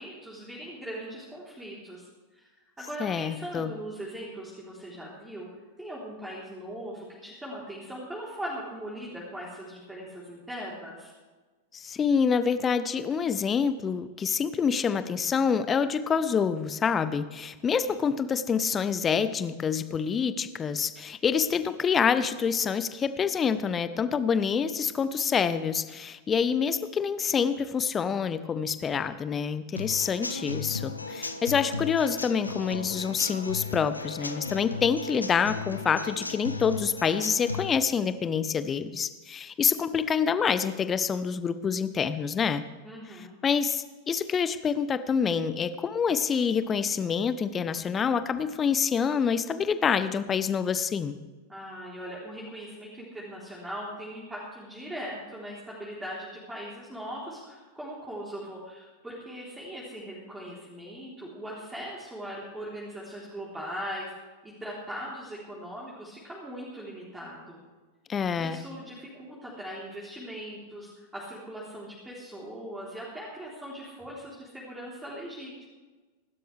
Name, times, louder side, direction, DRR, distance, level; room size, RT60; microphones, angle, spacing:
voice 1, 0.0-5.5 5.8-11.1 42.8-43.4 51.5-64.1 64.4-67.6 68.4-75.7, equal, 10° right, -5 dB, 3.7 m, -40 dB
voice 2, 3.0-3.7 11.7-42.6 43.1-51.2 68.1-68.6, left 6 dB, 20° left, 12 dB, 0.9 m, -27 dB
Human voice / Acoustic guitar / Drum, 29.7-37.7, left 4 dB, 80° left, 1.0 m, -36 dB
25.5 x 12.5 x 3.4 m, 1.3 s
figure-of-eight pair, 90°, 0 cm